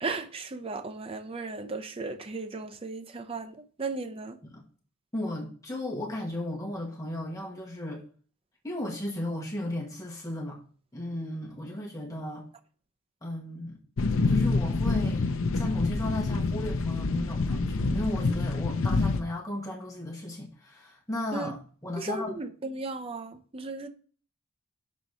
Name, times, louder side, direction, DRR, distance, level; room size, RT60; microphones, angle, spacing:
voice 1, 0.0-4.4 21.3-21.5 22.0-23.9, right 3 dB, 25° right, 0.5 m, -36 dB
voice 2, 5.1-8.0 8.6-10.6 10.9-12.5 13.2-13.8 14.3-21.6 21.8-22.4, left 1 dB, 15° left, 1.4 m, -35 dB
sound 1, 14.0-19.2, left 3 dB, 65° left, 0.6 m, -27 dB
6.4 x 4.1 x 5.3 m
head